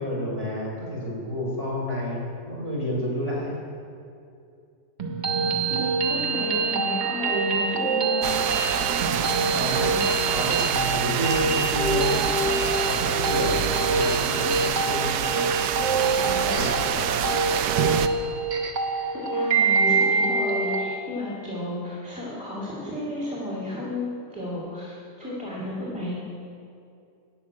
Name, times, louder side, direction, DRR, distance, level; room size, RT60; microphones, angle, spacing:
voice 1, 0.0-3.6 9.5-12.2 12.8-15.5 16.0-17.1, equal, 20° right, -6 dB, 3.8 m, -30 dB
sound 1, 5.0-21.0, right 3 dB, 40° right, 0.8 m, -25 dB
voice 2, 5.7-8.2 19.1-26.2, left 1 dB, 5° right, -7 dB, 2.2 m, -32 dB
sound 2, 8.2-18.1, right 9 dB, 90° right, 1.1 m, -27 dB
11.0 x 6.6 x 8.7 m, 2.5 s
omnidirectional pair, 1.6 m